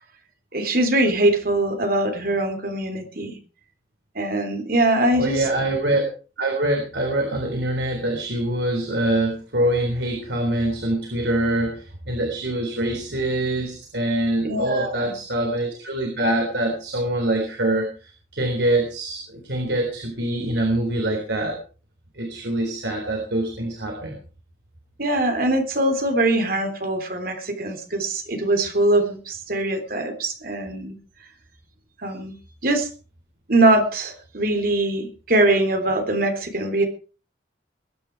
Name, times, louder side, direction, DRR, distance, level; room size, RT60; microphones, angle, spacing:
voice 1, 0.5-3.4 4.2-5.5 14.4-15.1 25.0-31.0 32.0-32.3 32.6-32.9 33.5-36.8, right 2 dB, 55° right, 6 dB, 3.6 m, -22 dB
voice 2, 5.2-6.1 6.4-21.6 22.1-24.2, right 1 dB, 75° right, 2 dB, 3.8 m, -24 dB
21.5 x 9.9 x 4.8 m, 0.36 s
head